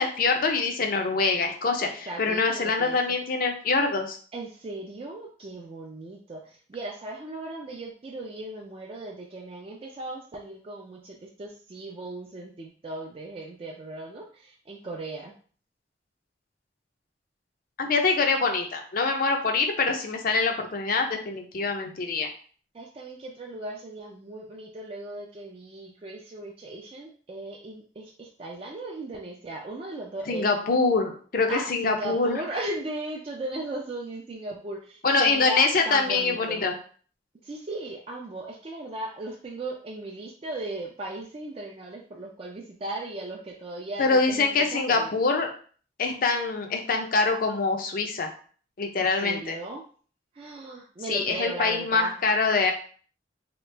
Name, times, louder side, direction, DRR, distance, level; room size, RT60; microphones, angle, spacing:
voice 1, 0.0-1.9 2.2-4.2 17.8-22.3 30.3-32.4 35.0-36.7 44.0-45.5 46.0-48.3 48.8-49.6 51.1-52.7, left 4 dB, 55° left, 4 dB, 0.5 m, -24 dB
voice 2, 2.1-3.0 4.3-15.3 22.7-30.5 31.5-36.6 37.4-45.1 49.0-49.8 50.3-52.1, right 2 dB, 30° right, -2 dB, 0.4 m, -37 dB
2.9 x 2.3 x 3.3 m, 0.43 s
head